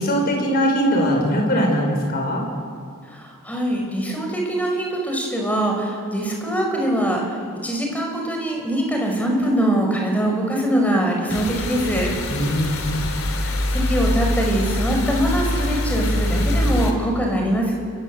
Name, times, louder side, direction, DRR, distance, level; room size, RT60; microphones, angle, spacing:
voice 1, 0.0-2.4 12.3-13.0, equal, 45° left, 1 dB, 6.3 m, -21 dB
voice 2, 3.1-7.4 7.6-12.1 13.3-17.7, right 1 dB, 5° left, 1 dB, 5.5 m, -23 dB
sound 1, 11.3-16.9, left 1 dB, 75° left, 3.2 m, -23 dB
30.0 x 23.0 x 7.8 m, 2.2 s
head